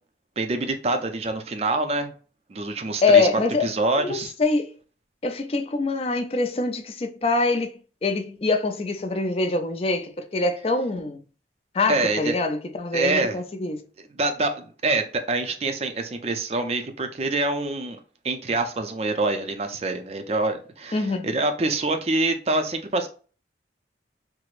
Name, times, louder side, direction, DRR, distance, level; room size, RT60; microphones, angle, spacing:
voice 1, 0.4-2.1 2.5-3.3 3.6-4.3 11.9-12.4 12.9-13.4 14.2-18.0 18.2-23.1, right 2 dB, 35° right, 0.4 m, -25 dB
voice 2, 3.0-4.7 5.2-11.2 11.7-13.8 20.9-21.3, left 3 dB, 35° left, 0.4 m, -24 dB
4.5 x 2.0 x 2.4 m
head